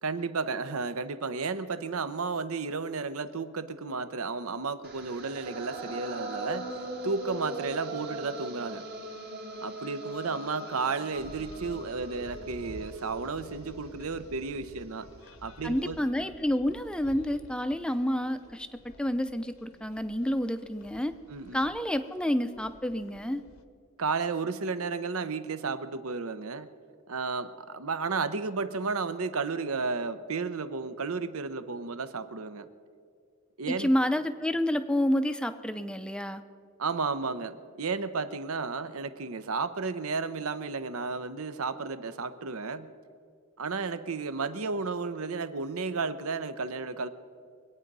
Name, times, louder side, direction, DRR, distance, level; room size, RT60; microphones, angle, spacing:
voice 1, 0.0-6.7 7.0-8.9 9.6-15.1 15.4-16.0 21.3-21.6 24.0-26.7 27.1-32.7 33.6-33.9 36.8-42.9 43.6-47.1, right 4 dB, 70° right, 12 dB, 0.8 m, -33 dB
sound 1, 4.8-14.9, right 1 dB, 45° right, 1.5 m, -40 dB
sound 2, 11.2-23.6, left 2 dB, 65° left, 0.9 m, -51 dB
voice 2, 15.6-21.1 21.5-23.4 33.7-36.4, equal, 5° left, 10 dB, 0.5 m, -29 dB
23.5 x 9.0 x 5.4 m, 2.2 s
head